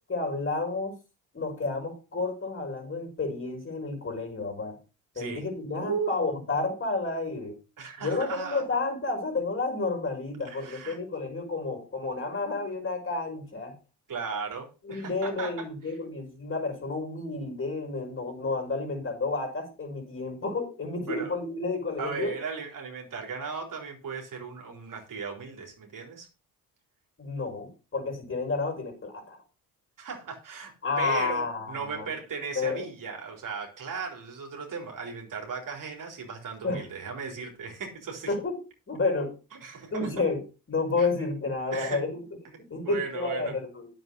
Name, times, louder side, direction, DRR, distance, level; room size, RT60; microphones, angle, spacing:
voice 1, 0.1-0.9 1.3-4.8 5.2-7.5 8.0-13.7 14.8-22.3 27.2-29.4 30.8-32.1 32.5-32.9 36.6-36.8 38.3-38.6 38.9-39.3 39.9-40.4 40.7-42.2 42.7-43.9, left 3 dB, 30° left, 3 dB, 5.9 m, -31 dB
voice 2, 5.8-6.1 7.8-8.7 10.4-11.0 14.1-16.0 21.1-21.3 22.0-26.3 30.0-38.3 39.5-40.1 41.0-41.1 41.7-42.0 42.8-43.6, right 5 dB, 55° right, 2 dB, 4.0 m, -36 dB
9.5 x 7.9 x 5.4 m, 0.32 s
supercardioid pair, 65°, 39 cm